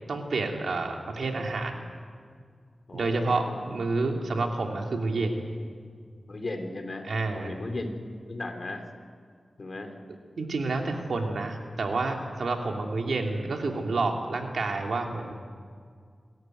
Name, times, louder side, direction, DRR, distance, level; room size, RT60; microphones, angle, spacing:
voice 1, 0.1-1.8 2.9-5.5 7.0-7.5 10.4-15.3, right 3 dB, 85° right, 2 dB, 2.9 m, -29 dB
voice 2, 2.9-3.7 6.3-7.1 7.3-8.9 9.6-9.9 10.8-10.9, left 2 dB, 55° left, 5 dB, 3.5 m, -37 dB
28.0 x 14.5 x 9.3 m, 2.1 s
wide cardioid pair, 65°, 0 cm